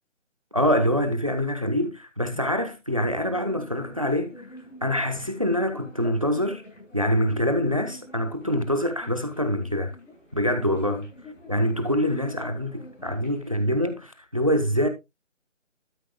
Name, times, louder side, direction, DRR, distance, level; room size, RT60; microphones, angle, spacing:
voice 1, 0.5-4.4 4.8-6.6 6.9-9.9 10.3-11.1 11.5-14.9, equal, 25° right, 0.9 m, -25 dB
sound 1, 3.0-13.7, left 2 dB, 70° left, 6.8 m, -47 dB
12.5 x 8.0 x 2.3 m
figure-of-eight pair, 180°, 38 cm